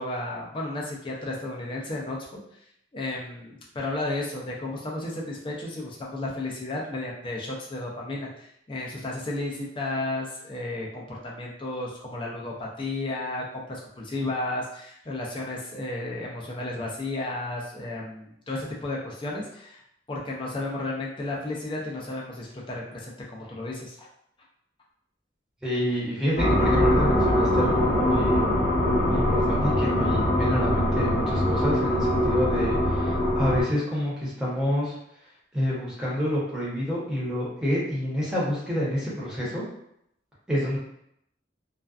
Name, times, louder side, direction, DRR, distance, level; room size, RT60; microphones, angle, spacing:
voice 1, 0.0-2.4 2.9-19.8 20.1-24.1, left 2 dB, 25° left, -3 dB, 0.5 m, -33 dB
voice 2, 25.6-28.5 29.0-35.0 35.5-39.6 40.5-40.8, equal, 5° right, -8 dB, 0.8 m, -28 dB
sound 1, 26.4-33.6, left 1 dB, 50° left, 0.9 m, -23 dB
2.4 x 2.2 x 2.4 m, 0.75 s
head